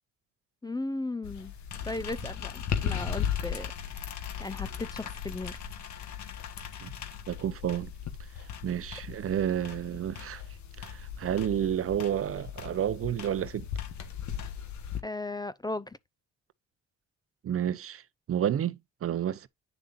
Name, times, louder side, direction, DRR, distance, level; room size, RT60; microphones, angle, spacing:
voice 1, 0.6-1.5 1.9-3.7 4.4-5.6 15.0-16.0, left 2 dB, 15° left, 0.5 m, -36 dB
sound 1, 1.2-15.0, left 8 dB, 70° left, 1.3 m, -37 dB
voice 2, 7.3-7.9 8.6-10.4 10.8-13.7 17.4-18.0 18.3-19.5, right 10 dB, 50° right, 0.6 m, -30 dB
9.1 x 6.6 x 2.5 m
cardioid pair, 90°, 30 cm